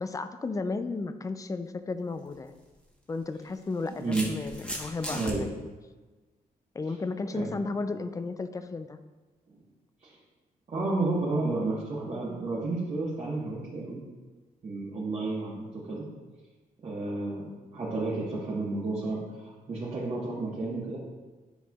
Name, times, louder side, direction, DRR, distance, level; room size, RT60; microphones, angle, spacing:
voice 1, 0.0-2.6 3.1-5.5 6.7-9.0, left 3 dB, 20° left, 10 dB, 0.4 m, -34 dB
sound 1, 2.2-2.3 3.4-5.3, equal, 5° left, 1.1 m, -37 dB
voice 2, 3.9-4.3 5.1-5.4 7.3-7.5 9.5-9.6 10.0-10.2 10.7-14.0 14.6-16.1 16.8-21.0, right 2 dB, 40° right, -6 dB, 1.3 m, -31 dB
10.0 x 4.4 x 2.3 m, 1.3 s
cardioid pair, 115°, 15 cm